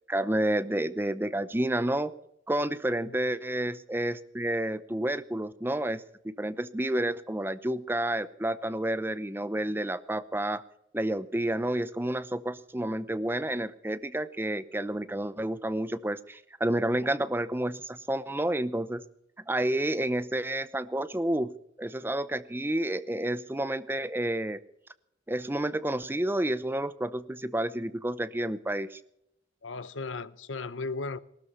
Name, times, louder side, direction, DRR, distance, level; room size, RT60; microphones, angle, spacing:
voice 1, 0.1-2.1 2.5-10.6 10.9-19.0 19.5-21.5 21.8-24.6 25.3-29.0, right 1 dB, 10° right, 0.7 m, -30 dB
voice 2, 29.6-31.2, left 3 dB, 90° left, 0.8 m, -36 dB
19.5 x 13.0 x 5.5 m
head